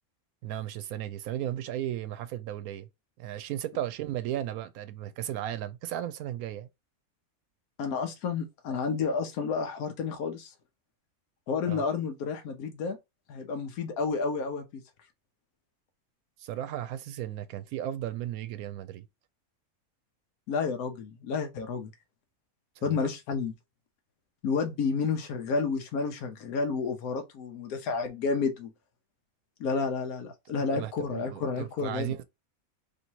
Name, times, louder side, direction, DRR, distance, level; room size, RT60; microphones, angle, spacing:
voice 1, 0.4-2.9 3.2-6.7 11.7-11.8 16.4-19.1 22.8-23.1 30.7-32.2, right 12 dB, 90° right, 1.1 m, -35 dB
voice 2, 7.8-10.5 11.5-13.0 13.3-14.6 20.5-21.9 22.8-23.5 24.4-28.7 29.6-32.1, left 5 dB, 85° left, 1.2 m, -30 dB
3.1 x 2.8 x 4.4 m
omnidirectional pair, 1.5 m